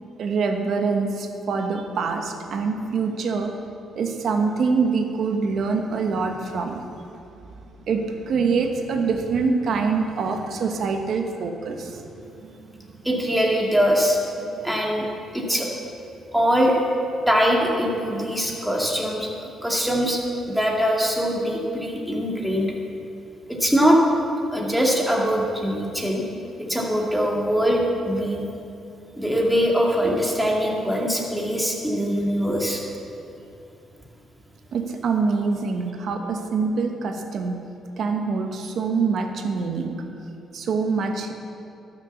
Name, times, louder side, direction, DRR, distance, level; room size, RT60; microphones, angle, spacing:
voice 1, 0.2-3.5 3.9-6.9 7.9-12.0 12.4-12.8 14.5-14.6 34.7-37.6 38.0-40.0 40.5-41.3, right 4 dB, 65° right, 4 dB, 1.3 m, -25 dB
voice 2, 13.0-14.2 14.6-15.1 15.3-15.7 16.3-16.8 17.3-20.2 20.5-22.7 23.5-24.0 24.5-26.2 26.6-28.5 29.1-32.8, equal, ahead, -2 dB, 2.3 m, -22 dB
12.5 x 6.7 x 7.1 m, 2.7 s
cardioid pair, 90°, 0 cm